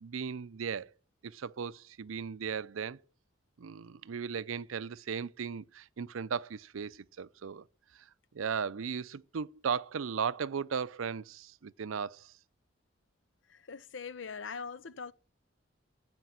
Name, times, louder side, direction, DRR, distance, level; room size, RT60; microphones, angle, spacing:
voice 1, 0.0-0.9 1.2-3.0 3.6-7.6 8.3-12.3, right 6 dB, 85° right, 0.5 m, -36 dB
voice 2, 13.5-15.1, left 5 dB, 70° left, 0.6 m, -42 dB
15.0 x 5.2 x 7.8 m
head